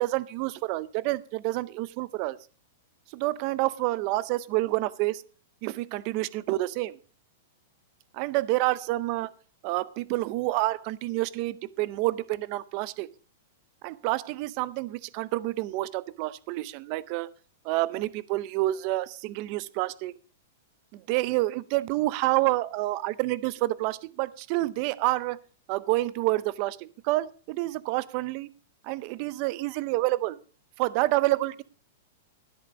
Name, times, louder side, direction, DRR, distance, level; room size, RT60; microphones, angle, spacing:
voice 1, 0.0-2.4 3.1-5.2 5.6-7.0 8.1-9.3 9.6-13.1 13.8-17.3 17.6-20.1 20.9-25.4 25.7-28.5 28.8-30.4 30.8-31.6, right 18 dB, 35° right, 19 dB, 0.5 m, -28 dB
13.0 x 8.2 x 5.1 m, 0.38 s
supercardioid pair, 170°, 0 cm